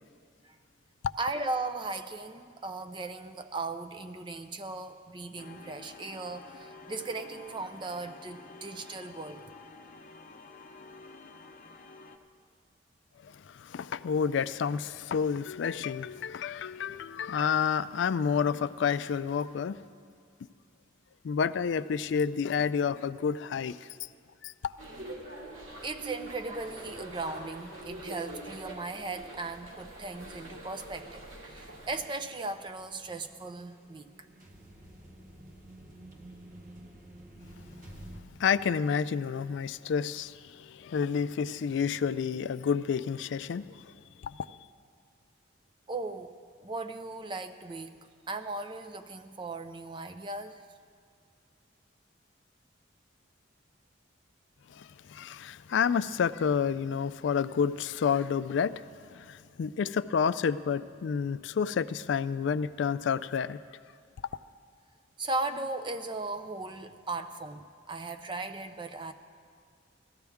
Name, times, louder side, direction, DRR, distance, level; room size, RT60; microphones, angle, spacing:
voice 1, 1.2-9.4 25.8-34.3 45.9-46.3 46.6-48.0 48.3-50.6 65.2-69.1, right 3 dB, 25° right, 0.4 m, -37 dB
sound 1, 5.4-12.2, left 3 dB, 40° left, 0.7 m, -50 dB
voice 2, 13.2-19.8 21.2-23.9 24.4-24.7 38.4-43.9 44.2-44.6 54.7-63.6, left 6 dB, 65° left, 0.3 m, -30 dB
sound 2, 24.8-32.0, right 1 dB, 90° right, 2.5 m, -44 dB
sound 3, 31.8-38.2, right 1 dB, 40° right, 1.2 m, -51 dB
17.0 x 13.5 x 3.5 m
head